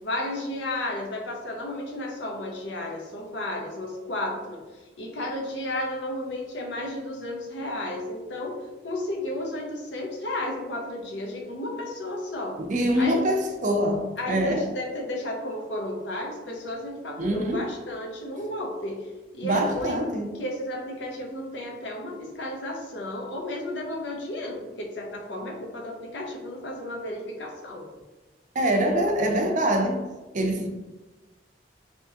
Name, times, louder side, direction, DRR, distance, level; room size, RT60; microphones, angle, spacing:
voice 1, 0.0-4.6 5.0-8.6 8.8-12.6 13.0-13.2 14.2-19.0 19.3-20.0 20.3-27.9, left 1 dB, 75° left, 0.7 m, -33 dB
voice 2, 12.6-14.6 17.2-17.7 19.4-20.3 28.6-30.1 30.3-30.7, equal, 45° right, 0.5 m, -24 dB
3.5 x 2.8 x 2.8 m
head